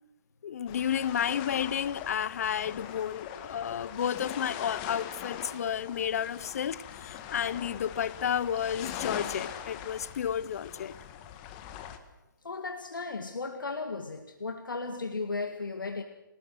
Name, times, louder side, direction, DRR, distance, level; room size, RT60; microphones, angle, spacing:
voice 1, 0.4-10.9, left 9 dB, 50° left, 0.8 m, -31 dB
sound 1, 0.7-12.0, left 9 dB, 25° left, 1.8 m, -42 dB
voice 2, 12.4-16.0, left 3 dB, 75° left, 2.1 m, -35 dB
28.0 x 18.5 x 6.3 m
figure-of-eight pair, 140°, 11 cm